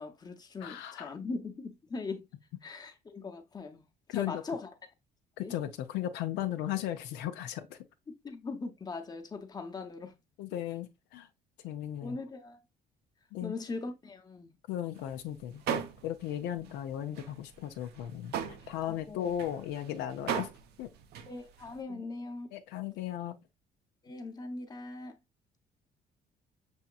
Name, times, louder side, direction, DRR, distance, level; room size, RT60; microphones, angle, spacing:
voice 1, 0.0-2.3 2.6-3.8 4.1-4.7 5.4-5.5 8.1-10.2 12.0-12.6 13.4-14.5 18.8-19.3 21.3-22.5 24.0-25.2, left 3 dB, 25° left, 0.8 m, -40 dB
voice 2, 0.6-1.1 4.1-4.4 5.4-7.8 10.4-11.3 11.6-12.2 13.3-13.6 14.7-20.5 20.8-20.9 21.9-22.0 22.5-23.4, left 11 dB, 90° left, 0.5 m, -36 dB
sound 1, 15.0-15.2 15.5-16.4 16.6-16.8 17.1-21.8, right 9 dB, 75° right, 0.6 m, -38 dB
6.2 x 2.9 x 2.3 m
cardioid pair, 110°, 17 cm